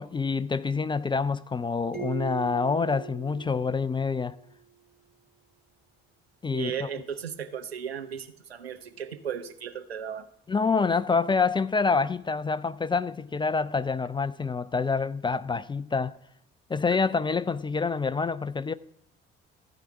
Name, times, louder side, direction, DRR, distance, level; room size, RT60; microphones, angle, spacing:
voice 1, 0.0-4.4 6.4-6.8 10.5-16.2 16.7-18.7, left 4 dB, 15° left, 0.4 m, -27 dB
sound 1, 1.9-4.5, right 9 dB, 30° right, 3.5 m, -40 dB
voice 2, 6.5-10.3, right 8 dB, 85° right, 0.7 m, -35 dB
14.5 x 4.9 x 8.3 m
figure-of-eight pair, 45°, 30 cm